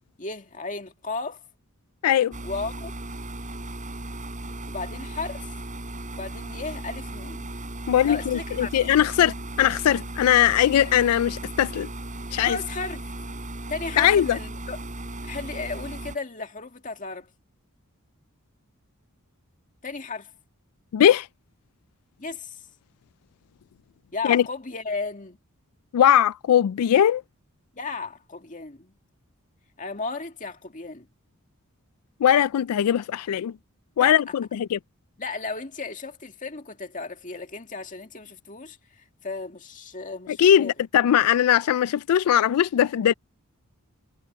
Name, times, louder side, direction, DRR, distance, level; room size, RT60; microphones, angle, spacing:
voice 1, 0.2-1.4 2.4-2.9 4.7-5.5 6.1-7.5 8.0-8.7 12.5-13.0 13.7-14.8 15.2-17.3 19.8-20.3 22.2-22.6 24.1-25.4 27.8-28.9 29.8-31.1 34.0-34.1 35.2-40.7, left 3 dB, 35° left, 2.1 m, -34 dB
voice 2, 2.0-2.3 7.9-11.9 12.3-12.6 14.0-14.4 20.9-21.3 24.2-24.4 25.9-27.2 32.2-33.5 34.0-34.8 40.3-43.1, left 10 dB, 85° left, 0.3 m, -20 dB
sound 1, 2.3-16.2, right 1 dB, 35° right, 6.0 m, -36 dB
head